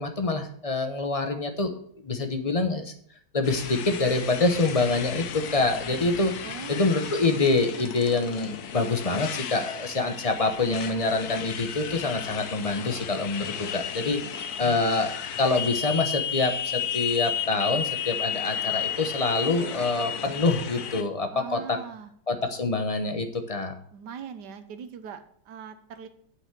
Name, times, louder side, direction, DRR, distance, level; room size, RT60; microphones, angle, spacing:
voice 1, 0.0-1.7 2.0-2.9 3.3-6.3 6.7-14.2 14.6-15.1 15.4-21.8 22.3-23.7, left 3 dB, 30° left, 6 dB, 0.6 m, -26 dB
Motorcycle, 3.4-21.0, left 8 dB, 60° left, 1.2 m, -33 dB
voice 2, 6.4-7.1 21.3-22.1 23.9-26.1, right 7 dB, 60° right, 10 dB, 1.4 m, -41 dB
8.0 x 6.3 x 7.5 m, 0.64 s
omnidirectional pair, 2.2 m